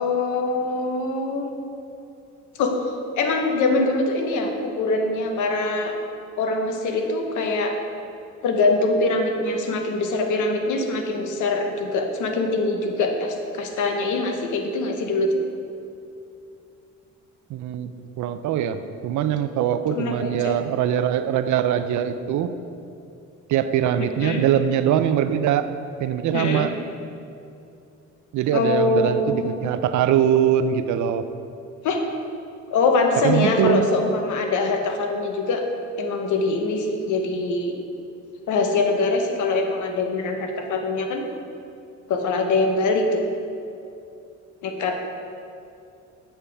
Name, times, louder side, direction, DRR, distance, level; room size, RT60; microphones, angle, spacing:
voice 1, 0.0-1.5 2.6-2.8 3.2-5.9 6.4-7.7 8.4-15.3 19.9-20.5 24.0-24.4 26.3-26.7 28.5-29.7 31.8-32.0 32.7-35.6 36.0-37.8 38.5-41.3 42.1-43.2 44.6-45.0, left 3 dB, 75° left, 4 dB, 0.9 m, -23 dB
voice 2, 17.5-22.5 23.5-25.7 26.0-26.7 28.3-31.2 33.2-33.9, right 9 dB, 75° right, 11 dB, 0.5 m, -22 dB
8.5 x 5.6 x 3.4 m, 2.6 s
cardioid pair, 90°, 30 cm